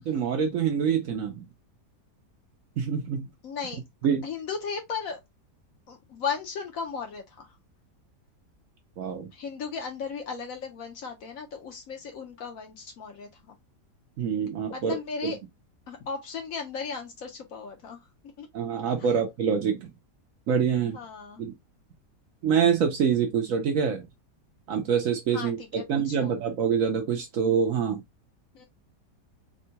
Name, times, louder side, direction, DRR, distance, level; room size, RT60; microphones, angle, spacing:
voice 1, 0.1-1.5 2.8-3.3 4.0-4.3 9.0-9.3 14.2-15.0 15.2-15.3 18.5-19.9 20.5-21.0 21.4-21.5 22.4-24.0 24.7-28.0, right 7 dB, 65° right, 0.9 m, -25 dB
voice 2, 3.4-3.8 4.2-5.2 5.9-7.6 9.3-13.6 14.7-15.4 15.9-18.1 18.4-18.5 19.0-19.2 20.9-21.4 25.3-26.4 28.5-28.7, left 5 dB, 65° left, 1.0 m, -36 dB
3.6 x 2.2 x 2.7 m
omnidirectional pair, 1.8 m